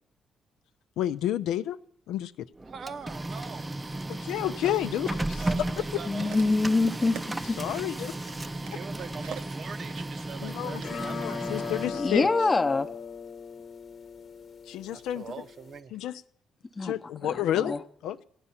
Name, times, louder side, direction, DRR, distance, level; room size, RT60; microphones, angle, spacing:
voice 1, 1.0-1.8 2.1-2.3 4.1-5.2 7.6-8.1 10.4-12.3 14.7-15.2 15.9-16.2 16.8-18.2, left 12 dB, 90° left, 0.5 m, -30 dB
Printer, 2.6-12.4, right 2 dB, 20° right, 0.5 m, -35 dB
voice 2, 2.6-3.7 5.2-6.5 8.8-11.8 14.9-16.0, right 5 dB, 55° right, 0.7 m, -43 dB
sound 1, 5.7-12.1 12.8-12.9, right 8 dB, 90° right, 0.9 m, -47 dB
voice 3, 6.1-7.6 11.9-12.9 16.8-17.0 17.6-17.8, left 3 dB, 25° left, 0.7 m, -25 dB
sound 2, 10.8-15.8, left 6 dB, 55° left, 0.9 m, -38 dB
16.5 x 9.7 x 5.7 m
cardioid pair, 90°, 0 cm